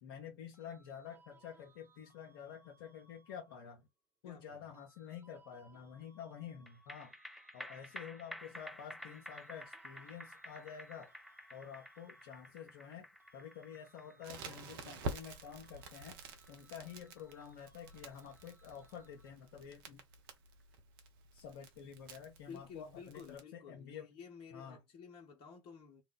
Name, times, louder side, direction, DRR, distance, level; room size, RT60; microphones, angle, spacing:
voice 1, 0.0-3.9 4.2-7.1 7.5-11.1 11.5-13.1 13.3-16.2 16.5-20.0 21.3-24.1 24.5-24.8, left 8 dB, 75° left, 0.6 m, -49 dB
sound 1, 0.5-3.9 4.7-8.5 9.0-12.9 13.2-19.5, right 3 dB, 20° right, 1.0 m, -68 dB
voice 2, 4.2-4.6 22.5-26.0, left 6 dB, 50° left, 0.9 m, -53 dB
sound 2, 6.7-19.3 19.7-19.8, equal, ahead, 0.3 m, -53 dB
Crackle, 14.2-23.4, right 3 dB, 70° right, 0.7 m, -49 dB
2.5 x 2.3 x 3.5 m
hypercardioid pair, 70°, 12 cm